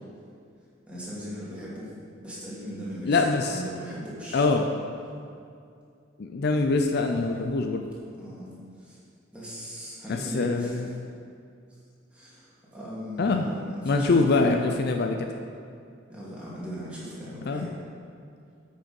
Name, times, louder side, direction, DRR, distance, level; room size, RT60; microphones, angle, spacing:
voice 1, 0.9-1.9 2.2-4.5 7.0-7.4 8.1-8.5 8.8-9.0 9.3-10.8 12.1-14.7 16.1-17.8, equal, 5° right, -8 dB, 2.3 m, -38 dB
voice 2, 3.1-3.6 4.3-4.7 6.2-7.9 10.1-11.0 13.2-13.5 13.8-15.3 17.5-17.7, left 3 dB, 55° left, 4 dB, 0.5 m, -24 dB
8.6 x 6.2 x 5.3 m, 2.4 s
head